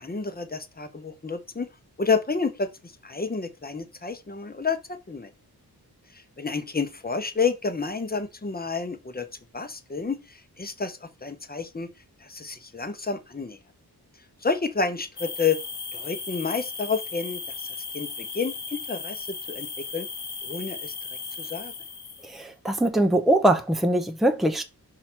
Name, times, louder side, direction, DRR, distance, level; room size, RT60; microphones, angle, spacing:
voice 1, 0.0-1.7 2.0-2.7 3.0-5.3 6.1-9.3 9.5-11.9 12.2-13.6 14.4-15.6 15.9-17.4 17.9-20.1 20.4-20.9 21.4-21.7, left 5 dB, 25° left, 0.9 m, -29 dB
amb-night-cricets montenegro, 15.2-22.4, left 5 dB, 80° left, 1.3 m, -36 dB
voice 2, 22.2-24.6, right 1 dB, ahead, 0.7 m, -22 dB
5.7 x 4.9 x 4.4 m
wide cardioid pair, 110°, 39 cm